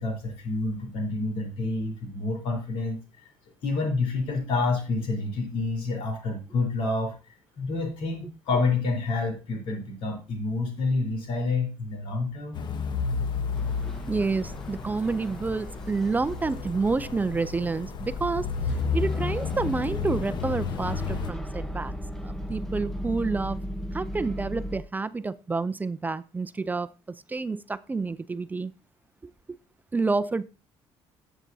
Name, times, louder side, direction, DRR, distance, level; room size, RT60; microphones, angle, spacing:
voice 1, 0.0-3.3 3.6-7.1 7.6-12.6, left 3 dB, 80° left, 2 dB, 4.0 m, -28 dB
sound 1, 12.5-21.3, left 5 dB, 50° left, 1.0 m, -32 dB
sound 2, 13.5-24.8, equal, 5° left, 1.0 m, -37 dB
voice 2, 13.9-18.5 18.9-21.9 22.2-23.6 23.9-28.7 29.2-29.3 29.9-30.5, right 3 dB, 20° right, 15 dB, 0.4 m, -29 dB
12.0 x 8.0 x 2.7 m, 0.32 s
cardioid pair, 110°, 10 cm